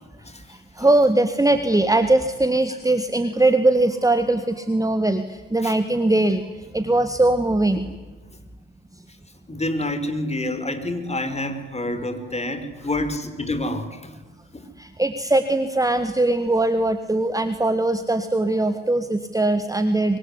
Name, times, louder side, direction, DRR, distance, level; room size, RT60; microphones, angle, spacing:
voice 1, 0.8-5.2 5.5-6.4 6.7-7.9 14.8-20.2, right 2 dB, 10° right, 10 dB, 1.8 m, -20 dB
voice 2, 9.5-14.2 14.5-14.7, left 1 dB, 15° left, 8 dB, 5.3 m, -28 dB
25.5 x 23.5 x 9.9 m, 1.2 s
figure-of-eight pair, 45°, 36 cm